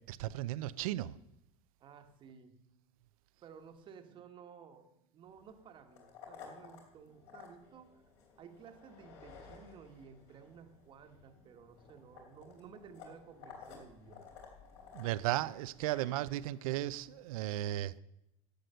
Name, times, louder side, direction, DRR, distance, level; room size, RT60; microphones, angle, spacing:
voice 1, 0.1-1.1 14.9-18.0, right 14 dB, 85° right, 0.5 m, -35 dB
voice 2, 1.8-2.6 3.4-4.9 5.1-8.0 8.4-14.3, right 6 dB, 30° right, 1.2 m, -55 dB
sound 1, 5.3-17.4, left 6 dB, 60° left, 3.2 m, -56 dB
12.0 x 8.0 x 6.7 m
supercardioid pair, 155°, 18 cm